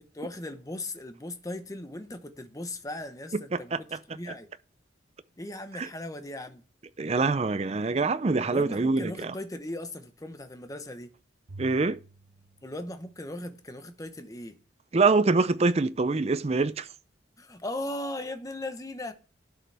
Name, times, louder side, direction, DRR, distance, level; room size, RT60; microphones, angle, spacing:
voice 1, 0.1-4.5 5.4-6.6 8.5-11.1 12.6-14.5 17.4-19.1, left 1 dB, 15° left, 0.9 m, -38 dB
voice 2, 3.3-4.0 5.7-5.9 7.0-9.3 11.6-12.0 14.9-16.9, right 3 dB, 35° right, 0.5 m, -25 dB
Bowed string instrument, 11.5-13.9, right 3 dB, 85° right, 1.1 m, -50 dB
11.5 x 6.7 x 3.4 m
head